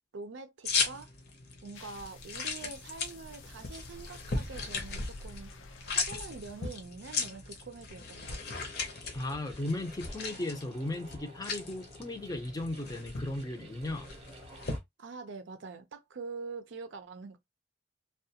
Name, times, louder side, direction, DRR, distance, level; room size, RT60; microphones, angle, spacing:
voice 1, 0.1-1.1 1.6-5.5 5.9-8.7 15.0-17.4, right 4 dB, 75° right, 0.5 m, -45 dB
sound 1, 0.7-14.8, left 4 dB, 55° left, 0.7 m, -38 dB
sound 2, 1.8-6.9, left 1 dB, 90° left, 0.5 m, -50 dB
sound 3, 8.4-14.8, right 1 dB, 30° right, 0.6 m, -53 dB
voice 2, 9.1-14.1, left 1 dB, 20° left, 0.5 m, -36 dB
2.3 x 2.2 x 2.8 m
head